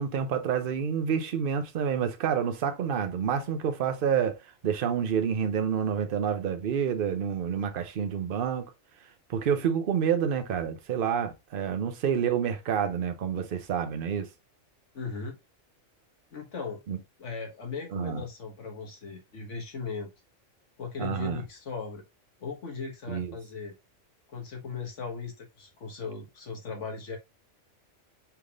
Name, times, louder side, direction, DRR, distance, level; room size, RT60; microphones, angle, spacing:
voice 1, 0.0-8.7 9.3-14.3 16.9-17.0 17.9-18.2 21.0-21.4 23.1-23.3, right 7 dB, 50° right, 0.8 m, -28 dB
voice 2, 14.9-15.4 16.3-16.8 17.2-20.1 20.8-22.0 22.4-23.7 24.3-27.2, left 5 dB, 75° left, 1.6 m, -38 dB
5.8 x 3.4 x 2.4 m
omnidirectional pair, 1.3 m